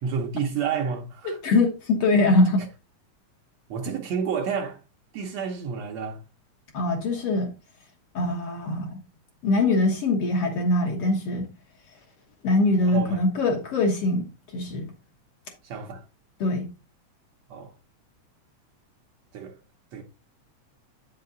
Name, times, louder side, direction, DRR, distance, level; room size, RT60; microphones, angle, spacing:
voice 1, 0.0-1.4 3.7-4.8 5.1-6.2 12.9-13.2 15.6-16.0 17.5-17.7 19.3-19.6 19.9-20.0, right 6 dB, 70° right, 2.0 m, -30 dB
voice 2, 1.2-2.7 6.7-7.5 8.1-9.0 9.4-11.5 12.4-14.3 14.5-14.9 16.4-16.7, left 2 dB, 60° left, 1.9 m, -23 dB
8.5 x 5.6 x 3.8 m
omnidirectional pair, 3.5 m